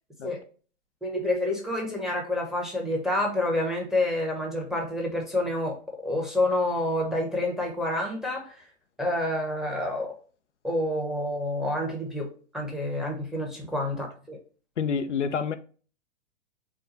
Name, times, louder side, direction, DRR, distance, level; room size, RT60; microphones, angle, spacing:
voice 1, 1.0-8.6 9.0-10.1 10.6-12.3 12.5-14.4, left 1 dB, ahead, 1.1 m, -28 dB
voice 2, 14.8-15.6, left 6 dB, 80° left, 0.5 m, -28 dB
4.6 x 2.3 x 4.3 m
figure-of-eight pair, 105°, 35 cm